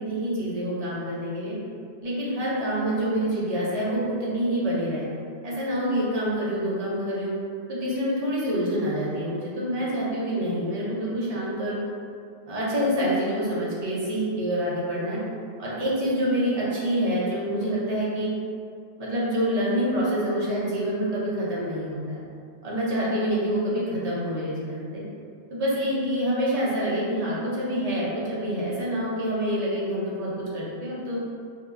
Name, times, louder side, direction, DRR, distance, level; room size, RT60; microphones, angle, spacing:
voice 1, 0.0-1.6 2.0-5.1 5.4-7.3 7.7-11.8 12.5-15.2 15.6-18.3 19.0-22.2 22.6-25.0 25.5-31.2, equal, 40° right, -7 dB, 0.7 m, -27 dB
2.7 x 2.1 x 3.7 m, 2.3 s
omnidirectional pair, 1.2 m